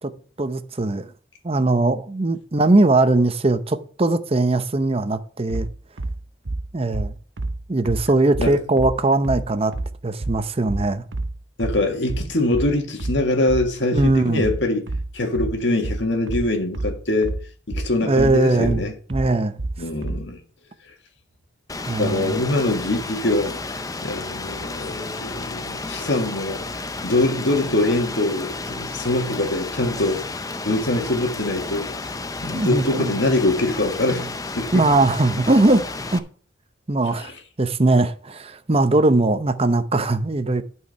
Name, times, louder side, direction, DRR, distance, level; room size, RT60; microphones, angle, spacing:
voice 1, 0.4-1.1 1.4-5.7 6.7-7.1 7.7-9.7 10.0-11.0 13.9-14.5 18.0-18.8 19.1-19.6 21.9-22.4 32.5-33.2 34.7-36.2 36.9-37.3 37.6-40.6, right 2 dB, 35° right, 0.7 m, -20 dB
sound 1, 5.5-20.3, right 2 dB, 85° right, 0.9 m, -28 dB
voice 2, 11.6-14.8 15.1-17.3 17.7-18.9 19.8-20.4 22.0-23.5 24.0-26.6 27.0-30.2 30.6-31.9 32.4-34.9 37.2-37.3, left 2 dB, 75° left, 1.9 m, -23 dB
Rain, 21.7-36.2, left 3 dB, 20° left, 0.6 m, -32 dB
11.5 x 4.7 x 5.7 m
head